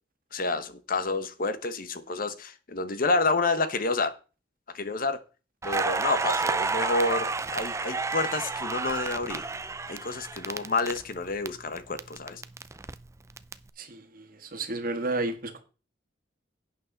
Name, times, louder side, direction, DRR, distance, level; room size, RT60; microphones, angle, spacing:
voice 1, 0.3-4.1 4.7-5.2 5.6-9.5 9.9-12.4, left 3 dB, 50° left, 1.0 m, -29 dB
Crackle, 5.6-11.5 11.8-13.5, right 4 dB, 15° right, 0.5 m, -30 dB
voice 2, 13.8-15.6, right 2 dB, 50° right, 1.7 m, -32 dB
11.0 x 8.7 x 4.0 m
head